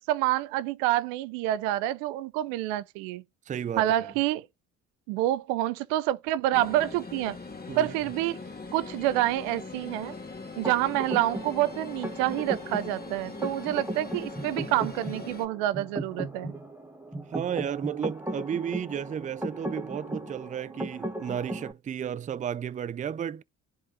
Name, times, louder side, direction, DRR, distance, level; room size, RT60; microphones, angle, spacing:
voice 1, 0.1-3.2 3.8-4.5 5.1-7.4 7.8-8.4 8.7-10.2 10.6-16.5, right 14 dB, 90° right, 0.5 m, -27 dB
voice 2, 3.5-3.9 7.7-7.9 17.3-23.4, right 8 dB, 25° right, 0.4 m, -33 dB
sound 1, 6.5-15.5, left 3 dB, 25° left, 2.0 m, -41 dB
sound 2, 10.6-21.7, right 1 dB, 5° right, 1.7 m, -37 dB
11.0 x 3.8 x 2.6 m
supercardioid pair, 65°, 34 cm